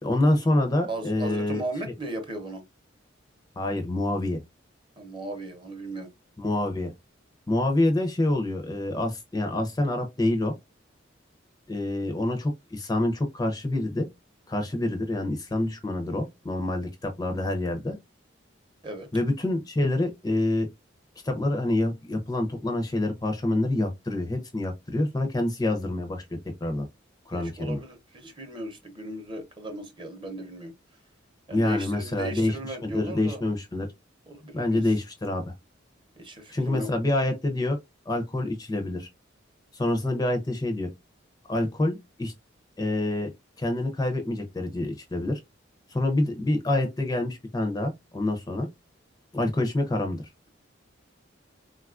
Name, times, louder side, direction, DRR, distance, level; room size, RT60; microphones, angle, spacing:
voice 1, 0.0-1.6 3.6-4.4 6.4-6.9 7.5-10.5 11.7-14.1 14.5-18.0 19.1-20.7 21.2-26.3 26.6-26.9 27.3-27.8 31.5-33.9 34.5-35.5 36.5-37.8 38.1-39.1 39.7-40.9 41.5-42.3 42.8-43.3 43.6-45.4 45.9-48.7 49.3-50.3, left 1 dB, 20° left, 0.5 m, -27 dB
voice 2, 0.9-2.6 5.0-6.1 18.8-19.1 27.3-30.7 31.5-33.4 34.3-34.8 36.2-36.9, right 1 dB, 25° right, 0.7 m, -36 dB
3.7 x 2.3 x 2.4 m
head